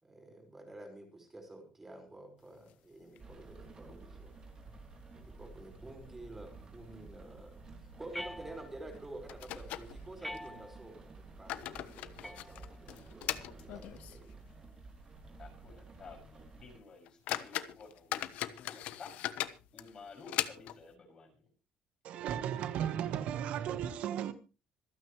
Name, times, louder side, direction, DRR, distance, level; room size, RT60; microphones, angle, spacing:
voice 1, 0.0-4.3 5.2-14.4, right 2 dB, 15° right, 5.3 m, -50 dB
sound 1, 2.5-3.5 3.8-3.9 4.3-4.4 5.0-5.5 5.8-5.9 6.5-6.7 7.0-7.2 8.6-8.7 9.3-10.5 11.1-14.3 14.7-14.8 15.3-15.4 15.9-16.0 16.6-16.7 17.0-20.9, left 13 dB, 80° left, 1.1 m, -40 dB
Rain, 3.2-16.8, right 3 dB, 30° right, 3.2 m, -52 dB
sound 2, 8.1-9.0 10.2-11.0 12.2-13.0, left 1 dB, 5° left, 1.1 m, -46 dB
voice 2, 15.4-19.1 19.7-21.3, left 4 dB, 35° left, 6.7 m, -53 dB
voice 3, 22.0-24.3, right 9 dB, 65° right, 1.4 m, -35 dB
26.0 x 9.4 x 3.3 m
cardioid pair, 155°, 2 cm